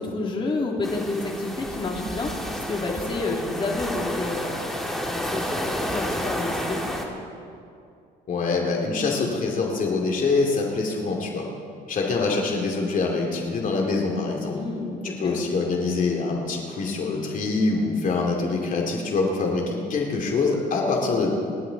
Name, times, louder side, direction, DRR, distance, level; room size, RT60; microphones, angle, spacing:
voice 1, 0.0-4.6 5.1-6.8 14.5-15.4, left 2 dB, 30° left, -1 dB, 2.7 m, -29 dB
sound 1, 0.8-7.1, equal, ahead, 2.3 m, -30 dB
voice 2, 8.3-11.5 11.9-14.5 15.0-21.3, left 3 dB, 50° left, 0 dB, 2.5 m, -25 dB
29.5 x 11.5 x 4.1 m, 2.4 s
cardioid pair, 110°, 17 cm